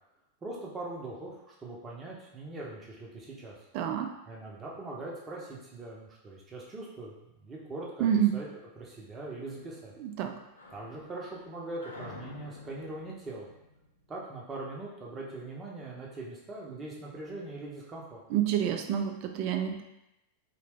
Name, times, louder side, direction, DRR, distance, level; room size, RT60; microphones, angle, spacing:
voice 1, 0.4-3.6 4.3-8.1 8.3-8.5 8.8-9.9 10.7-13.5 14.1-18.2, right 2 dB, 20° right, -4 dB, 0.7 m, -41 dB
voice 2, 3.7-4.1 8.0-8.4 10.0-10.4 18.3-19.8, right 9 dB, 45° right, 6 dB, 0.3 m, -28 dB
sound 1, 9.3-14.8, left 3 dB, 75° left, 0.5 m, -50 dB
2.7 x 2.1 x 3.4 m, 0.91 s
figure-of-eight pair, 90°, 0 cm